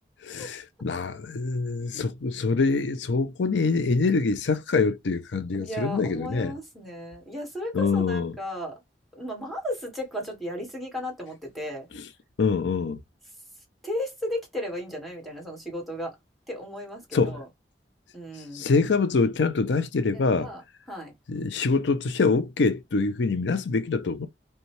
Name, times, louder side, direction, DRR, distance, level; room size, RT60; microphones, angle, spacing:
voice 1, 0.2-6.5 7.7-8.4 11.9-12.0 12.4-13.0 17.1-17.4 18.5-20.5 21.3-24.3, left 4 dB, 80° left, 0.5 m, -25 dB
voice 2, 5.5-8.8 9.1-11.9 13.8-16.2 16.5-17.5 18.1-18.7 20.1-20.6 20.9-21.1, left 1 dB, ahead, 1.6 m, -35 dB
5.3 x 2.3 x 3.1 m
head